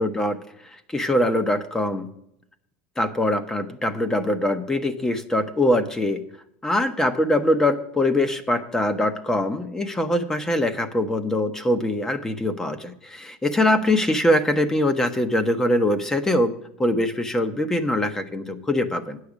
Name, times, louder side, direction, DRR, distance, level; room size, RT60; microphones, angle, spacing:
voice 1, 0.0-2.1 3.0-6.2 6.6-16.5 16.8-19.2, left 1 dB, 10° left, 10 dB, 0.9 m, -23 dB
9.3 x 6.6 x 7.2 m, 0.75 s
supercardioid pair, 130°, 5 cm